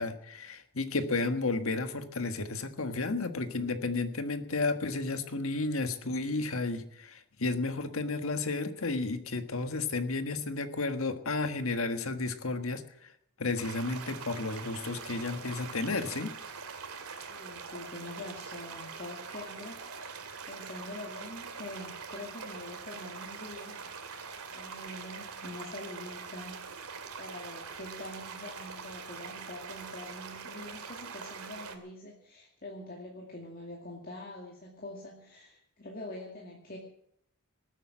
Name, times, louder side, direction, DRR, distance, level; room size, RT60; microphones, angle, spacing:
voice 1, 0.0-13.1 13.4-16.3, left 3 dB, 65° left, 8 dB, 1.5 m, -32 dB
sound 1, 13.6-31.8, right 5 dB, 85° right, 2.3 m, -43 dB
voice 2, 17.3-19.8 20.4-23.8 24.5-26.7 27.2-36.8, left 1 dB, 40° left, -1 dB, 2.3 m, -44 dB
19.5 x 9.0 x 7.4 m, 0.73 s
head